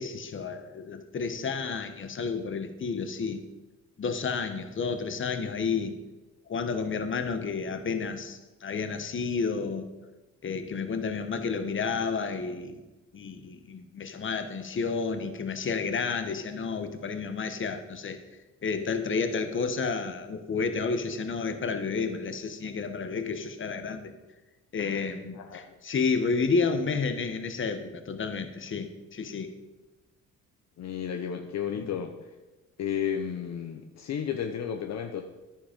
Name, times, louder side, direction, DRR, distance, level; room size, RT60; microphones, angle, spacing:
voice 1, 0.0-3.4 4.0-5.9 6.5-9.9 10.4-12.8 13.1-18.2 18.6-24.1 24.7-29.5 31.7-31.9, left 5 dB, 40° left, 9 dB, 1.2 m, -31 dB
voice 2, 24.8-25.7 30.8-32.1 32.8-35.2, left 8 dB, 60° left, 5 dB, 0.9 m, -33 dB
10.5 x 9.8 x 5.2 m, 1.1 s
cardioid pair, 90°, 30 cm